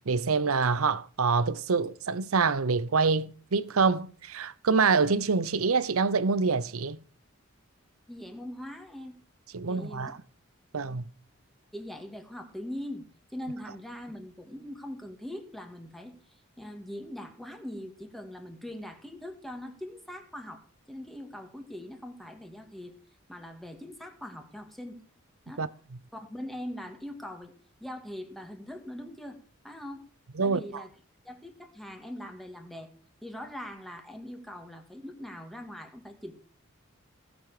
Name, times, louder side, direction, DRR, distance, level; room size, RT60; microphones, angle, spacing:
voice 1, 0.0-7.0 9.5-10.2 10.7-11.0 25.6-25.7 30.4-30.8, right 4 dB, 85° right, 0.8 m, -26 dB
voice 2, 8.1-9.2 9.7-10.1 10.8-11.0 11.7-13.1 13.3-23.0 23.3-25.0 25.5-25.7 26.1-27.5 27.8-29.4 29.6-30.1 30.4-30.9 31.2-32.9 33.2-36.3, left 1 dB, ahead, 1.9 m, -41 dB
17.5 x 7.1 x 5.0 m
head